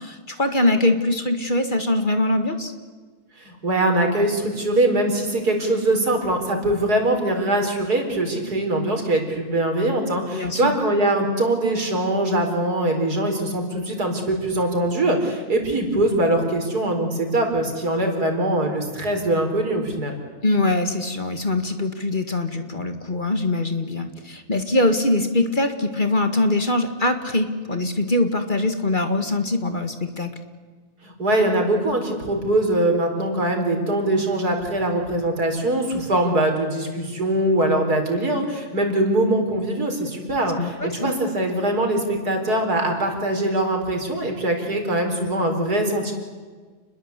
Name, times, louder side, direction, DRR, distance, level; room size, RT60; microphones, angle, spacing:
voice 1, 0.0-2.7 10.3-10.8 20.4-30.3 40.6-41.1, left 2 dB, 30° left, 7 dB, 2.1 m, -23 dB
voice 2, 3.4-20.1 31.0-46.1, right 1 dB, 90° right, 4 dB, 5.0 m, -22 dB
29.5 x 21.5 x 8.3 m, 1.4 s
omnidirectional pair, 1.6 m